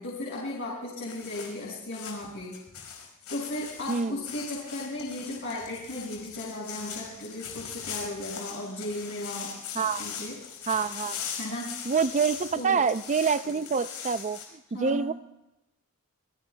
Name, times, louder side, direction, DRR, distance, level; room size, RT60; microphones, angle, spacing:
voice 1, 0.0-2.6 3.3-10.4 11.3-11.9 12.5-12.8 13.4-13.6 14.7-15.1, left 1 dB, 60° left, -4 dB, 5.6 m, -36 dB
sound 1, 1.1-14.4, left 7 dB, 85° left, 5.1 m, -40 dB
voice 2, 3.9-4.2 9.7-10.1 10.7-11.2 11.9-14.4 14.8-15.1, right 5 dB, 35° right, 13 dB, 0.5 m, -26 dB
28.0 x 20.5 x 2.3 m, 0.94 s
head